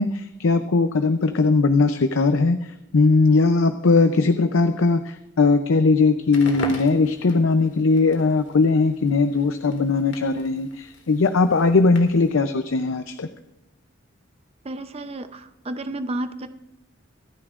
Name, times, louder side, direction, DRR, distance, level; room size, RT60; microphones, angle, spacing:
voice 1, 0.0-13.3, left 3 dB, 85° left, 8 dB, 0.6 m, -19 dB
Crackle, 6.2-12.4, left 2 dB, 65° left, 2.0 m, -41 dB
voice 2, 14.6-16.5, right 1 dB, 30° right, 10 dB, 0.6 m, -31 dB
25.0 x 9.8 x 2.5 m, 0.88 s
head